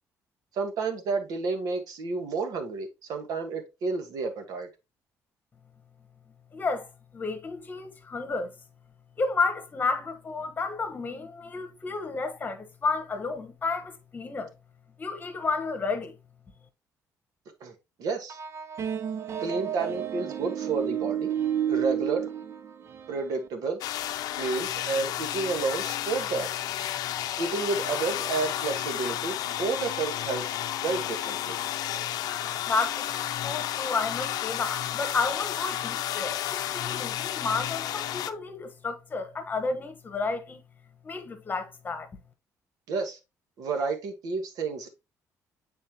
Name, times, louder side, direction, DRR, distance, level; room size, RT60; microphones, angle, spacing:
voice 1, 0.5-4.7 17.6-17.7 18.0-18.4 19.4-21.3 21.7-22.3 23.1-23.8 24.3-26.5 27.4-30.5 30.8-31.6 42.9-43.2 43.6-44.9, right 4 dB, 70° right, 1.4 m, -30 dB
voice 2, 6.5-6.9 7.1-8.5 9.2-14.5 15.0-16.1 32.7-33.1 33.4-40.6 41.0-42.1, left 4 dB, 30° left, 1.2 m, -31 dB
sound 1, 18.3-23.5, right 9 dB, 45° right, 0.5 m, -31 dB
sound 2, 23.8-38.3, left 12 dB, 80° left, 0.5 m, -32 dB
8.5 x 4.2 x 2.9 m
cardioid pair, 135°, 6 cm